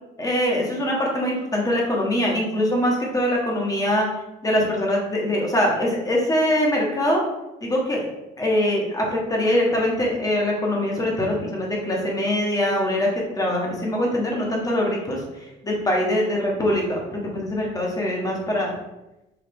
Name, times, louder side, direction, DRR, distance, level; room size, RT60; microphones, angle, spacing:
voice 1, 0.2-4.1 4.4-7.2 7.6-8.0 8.4-15.2 15.6-17.0 17.3-18.7, left 1 dB, 20° left, -2 dB, 1.3 m, -23 dB
4.9 x 2.7 x 3.5 m, 0.95 s
cardioid pair, 110°, 17 cm